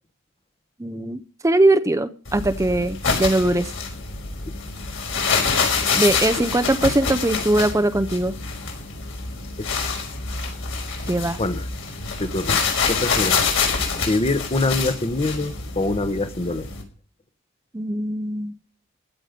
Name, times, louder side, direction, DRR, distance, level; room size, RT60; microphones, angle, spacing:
voice 1, 0.8-3.7 6.0-8.3 11.1-11.4 17.7-18.6, right 1 dB, 15° right, 11 dB, 0.6 m, -21 dB
sound 1, 2.3-16.8, left 5 dB, 65° left, 5.3 m, -26 dB
voice 2, 12.2-12.6 12.9-13.4 14.0-16.7, left 2 dB, 30° left, 11 dB, 1.1 m, -24 dB
16.0 x 12.5 x 5.2 m, 0.40 s
head